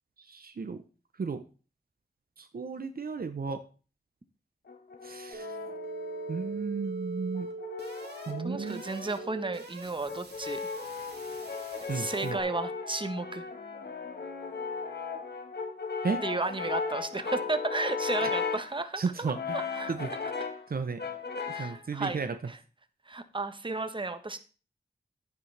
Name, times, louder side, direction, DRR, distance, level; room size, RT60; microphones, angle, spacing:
voice 1, 0.3-0.8 1.2-1.4 2.4-3.6 5.0-5.5 6.3-7.5 8.3-8.8 11.9-12.4 16.0-16.2 18.2-18.3 19.0-19.6 19.9-20.1 20.7-21.0 21.6-22.4, right 5 dB, 60° right, 8 dB, 0.8 m, -33 dB
Brass instrument, 4.7-6.6 7.3-9.4 10.1-18.7 19.3-20.7 21.0-21.8, left 5 dB, 75° left, 1.3 m, -36 dB
sound 1, 5.3-12.4, right 3 dB, 85° right, 2.3 m, -42 dB
voice 2, 8.4-10.6 11.9-13.5 16.2-19.9 21.5-22.6 23.1-24.4, right 3 dB, 30° right, 9 dB, 1.1 m, -34 dB
9.8 x 9.6 x 3.3 m, 0.36 s
wide cardioid pair, 70°, 17 cm